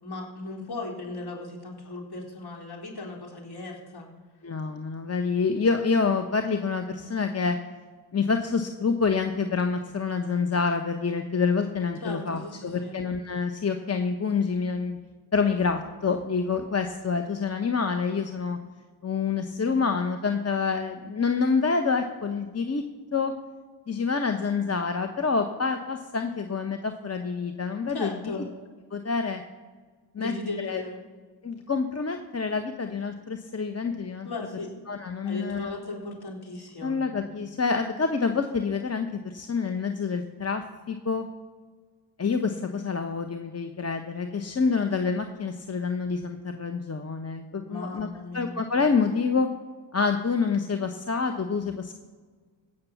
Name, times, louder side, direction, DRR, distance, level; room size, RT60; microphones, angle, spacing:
voice 1, 0.0-4.1 12.0-13.0 27.9-28.5 30.2-31.0 34.2-34.8 35.2-37.0 47.7-48.6, left 2 dB, 55° left, 0 dB, 3.8 m, -37 dB
voice 2, 4.4-7.6 8.1-15.0 15.3-18.6 19.0-22.8 23.1-23.3 23.9-28.3 28.9-29.4 30.1-30.3 30.6-30.8 31.4-34.3 34.9-35.7 36.8-41.3 42.2-48.1 48.3-49.5 49.9-51.9, left 5 dB, 35° left, 6 dB, 1.0 m, -27 dB
16.5 x 6.8 x 7.1 m, 1.5 s
cardioid pair, 60°, 46 cm